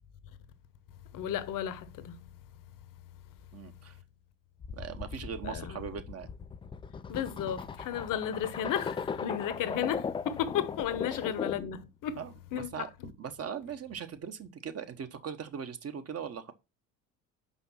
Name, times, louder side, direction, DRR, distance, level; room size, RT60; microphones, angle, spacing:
voice 1, 1.1-2.3 5.4-5.9 7.1-12.2 12.5-12.9, left 9 dB, 50° left, 1.1 m, -34 dB
voice 2, 3.5-4.0 4.7-6.3 11.1-11.2 12.2-16.5, right 7 dB, 35° right, 1.3 m, -40 dB
sound 1, 4.6-11.8, left 6 dB, 15° left, 0.3 m, -38 dB
5.6 x 5.3 x 5.8 m
hypercardioid pair, 60°, 42 cm